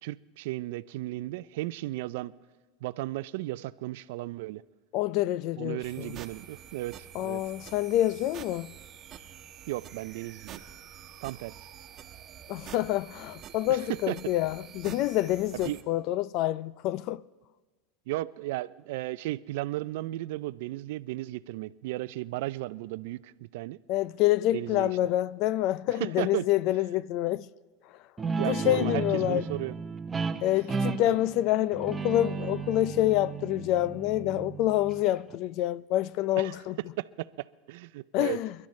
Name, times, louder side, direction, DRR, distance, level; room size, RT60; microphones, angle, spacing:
voice 1, 0.0-2.3 2.8-4.6 5.6-7.4 9.7-10.6 11.2-11.5 13.7-14.2 15.6-15.8 18.1-23.8 24.5-24.9 25.9-26.5 28.4-29.8 31.1-31.2 36.4-36.6 37.0-38.4, right 17 dB, 75° right, 0.4 m, -35 dB
voice 2, 4.9-6.2 7.1-8.7 12.5-17.2 23.9-27.5 28.4-29.4 30.4-36.8 38.1-38.5, left 14 dB, 55° left, 0.4 m, -27 dB
sound 1, 5.8-15.8, right 9 dB, 40° right, 1.2 m, -48 dB
Guitar, 28.2-35.4, right 5 dB, 20° right, 0.8 m, -34 dB
29.0 x 12.0 x 3.2 m
supercardioid pair, 110°, 0 cm